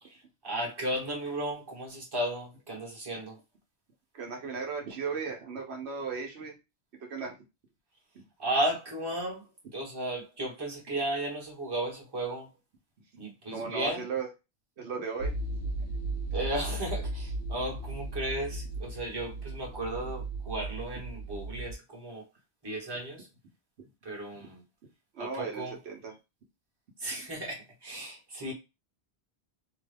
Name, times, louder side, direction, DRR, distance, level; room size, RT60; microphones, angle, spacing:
voice 1, 0.0-3.4 8.4-12.5 13.2-14.0 16.3-22.3 22.6-23.3 24.0-24.6 25.2-25.7 27.0-28.5, right 1 dB, 25° right, 1.1 m, -34 dB
voice 2, 4.1-6.6 7.1-7.4 8.1-8.2 13.5-14.3 14.8-15.4 24.4-24.5 25.1-26.1, right 5 dB, 80° right, 1.1 m, -36 dB
sound 1, 15.2-21.7, right 2 dB, 75° left, 1.0 m, -36 dB
2.8 x 2.3 x 3.3 m
omnidirectional pair, 1.1 m